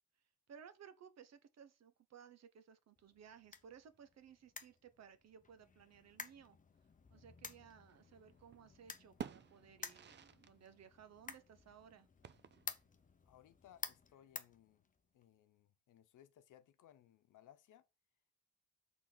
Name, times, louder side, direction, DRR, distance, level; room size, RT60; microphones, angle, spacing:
voice 1, 0.5-6.6 7.1-12.1, right 7 dB, 55° right, 1.0 m, -59 dB
sound 1, 3.0-15.2, left 5 dB, 25° left, 0.7 m, -53 dB
sound 2, 7.9-8.7 8.9-10.6 10.8-10.9 12.2-12.9, right 8 dB, 35° right, 0.5 m, -51 dB
voice 2, 13.2-17.8, left 11 dB, 75° left, 0.9 m, -64 dB
6.1 x 3.8 x 6.1 m
cardioid pair, 120°, 31 cm